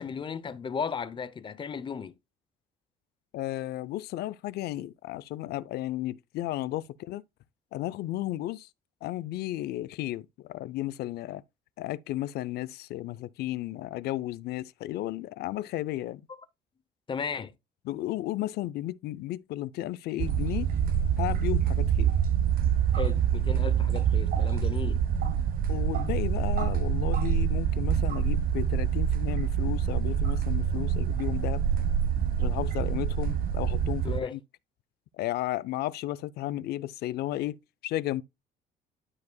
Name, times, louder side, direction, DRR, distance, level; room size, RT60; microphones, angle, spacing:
voice 1, 0.0-2.1 4.8-4.9 17.1-17.5 22.9-25.0 34.0-34.4, left 6 dB, 30° left, 0.6 m, -35 dB
voice 2, 3.3-7.2 7.7-8.7 9.0-11.4 11.8-16.2 17.9-20.7 21.2-22.1 25.7-31.6 32.4-34.4 35.2-38.2, left 15 dB, 70° left, 0.5 m, -34 dB
sound 1, 20.2-34.2, right 8 dB, 60° right, 0.8 m, -26 dB
12.0 x 4.8 x 2.2 m
cardioid pair, 110°, 17 cm